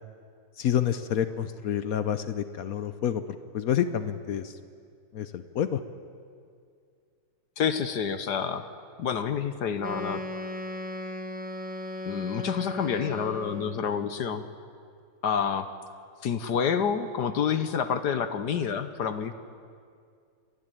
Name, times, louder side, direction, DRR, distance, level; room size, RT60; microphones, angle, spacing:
voice 1, 0.6-3.2 3.5-4.5 5.1-5.8, left 9 dB, 75° left, 12 dB, 0.8 m, -28 dB
voice 2, 7.6-8.6 9.0-10.2 12.0-14.5 15.2-15.7 16.2-19.3, left 7 dB, 60° left, 10 dB, 1.3 m, -28 dB
Wind instrument woodwind instrument, 9.8-13.9, left 1 dB, 10° right, 0.5 m, -37 dB
29.5 x 12.0 x 9.1 m, 2.3 s
omnidirectional pair, 2.4 m